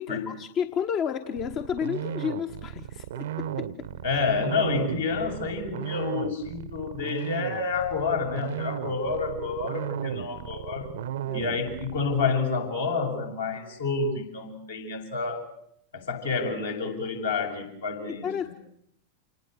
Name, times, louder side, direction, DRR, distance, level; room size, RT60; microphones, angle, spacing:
voice 1, 0.0-3.9 11.3-11.4 18.2-18.5, left 8 dB, 35° left, 8 dB, 1.2 m, -31 dB
sound 1, 1.4-12.3, right 10 dB, 60° right, 0.9 m, -35 dB
voice 2, 4.0-10.9 11.3-15.5 15.9-18.3, left 4 dB, 70° left, 1 dB, 7.0 m, -29 dB
28.0 x 19.5 x 8.1 m, 0.71 s
figure-of-eight pair, 90°, 0 cm